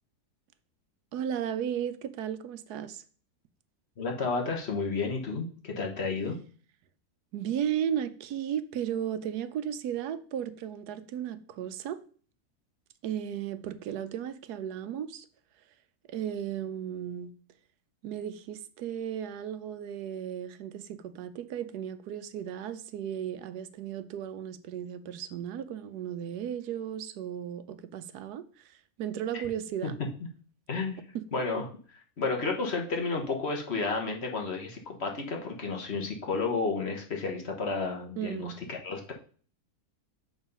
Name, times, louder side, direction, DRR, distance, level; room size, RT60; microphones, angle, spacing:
voice 1, 1.1-3.0 7.3-12.0 13.0-15.3 16.1-17.3 18.0-30.0 31.1-31.2 38.2-38.6, right 9 dB, 85° right, 1.2 m, -35 dB
voice 2, 4.0-6.4 29.3-29.4 30.7-31.0 31.3-39.1, left 4 dB, 45° left, 1.3 m, -32 dB
7.2 x 3.9 x 5.4 m
omnidirectional pair, 1.6 m